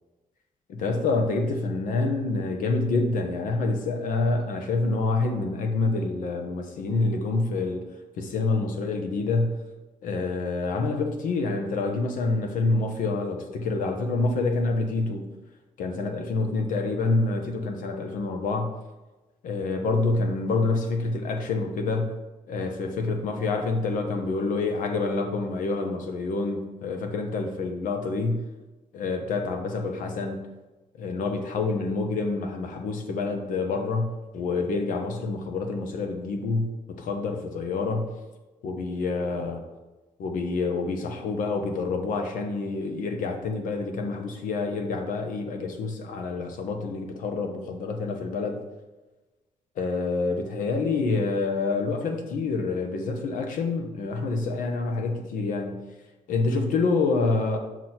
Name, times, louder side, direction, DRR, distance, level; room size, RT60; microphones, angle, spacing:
voice 1, 0.7-7.8 8.2-9.6 10.0-15.2 15.8-18.7 19.4-22.1 22.5-28.4 28.9-30.4 31.0-38.1 38.6-39.6 40.2-48.6 49.8-55.8 56.3-57.6, left 3 dB, 80° left, 5 dB, 1.1 m, -27 dB
6.2 x 6.1 x 4.4 m, 1.1 s
cardioid pair, 180°, 13 cm